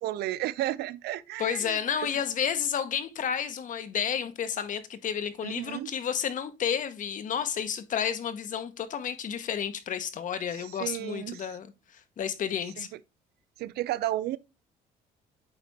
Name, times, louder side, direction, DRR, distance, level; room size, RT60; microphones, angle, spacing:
voice 1, 0.0-2.1 5.4-5.9 10.6-11.5 12.8-13.0 13.6-14.4, right 14 dB, 70° right, 0.5 m, -33 dB
voice 2, 1.4-11.7 12.2-12.9, left 8 dB, 50° left, 1.0 m, -31 dB
9.0 x 3.4 x 4.1 m
cardioid pair, 110°, 17 cm